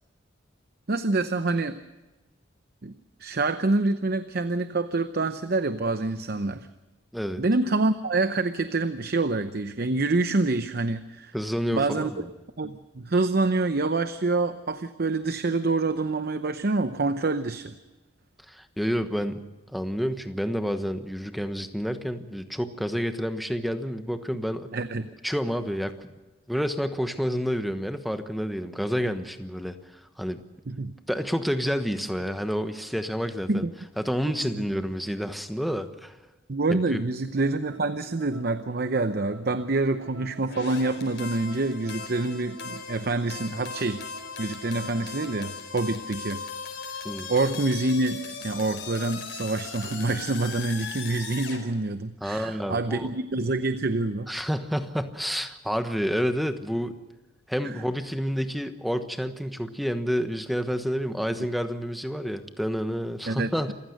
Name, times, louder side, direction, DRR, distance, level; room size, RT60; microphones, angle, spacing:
voice 1, 0.9-1.8 2.8-2.9 3.2-6.7 7.4-11.3 11.7-12.1 12.6-17.7 24.7-25.1 30.7-30.9 33.5-33.7 34.4-34.7 36.5-44.0 44.4-46.4 46.9-47.0 47.3-54.4 57.6-57.7 63.3-63.7, right 2 dB, 55° right, 11 dB, 0.8 m, -26 dB
voice 2, 7.1-7.4 11.3-12.3 18.5-19.4 19.7-24.7 25.2-26.1 26.5-30.4 31.1-33.6 34.0-36.2 36.7-37.0 47.0-47.3 52.2-53.1 54.3-56.9 57.5-63.7, equal, ahead, 8 dB, 1.2 m, -29 dB
sound 1, 37.3-45.6, right 3 dB, 75° right, 1.6 m, -47 dB
sound 2, 40.5-51.6, left 5 dB, 65° left, 4.7 m, -38 dB
27.5 x 15.5 x 6.6 m, 1.1 s
head